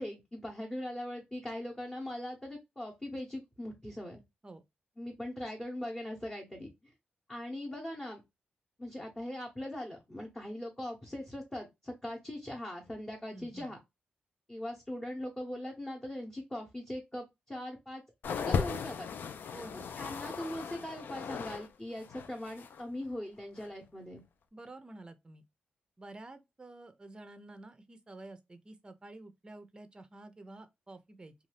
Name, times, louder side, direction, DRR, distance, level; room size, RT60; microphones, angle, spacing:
voice 1, 0.0-4.2 5.0-6.9 7.3-8.2 8.8-13.8 14.5-19.1 19.7-24.2, left 1 dB, 15° left, 0.9 m, -40 dB
voice 2, 13.3-13.7 19.5-19.9 24.5-25.4 26.0-31.3, right 2 dB, 25° right, 0.5 m, -50 dB
sound 1, 18.2-21.7 21.9-22.8 23.6-23.7, left 6 dB, 70° left, 0.3 m, -37 dB
2.6 x 2.3 x 3.2 m
cardioid pair, 90°, 3 cm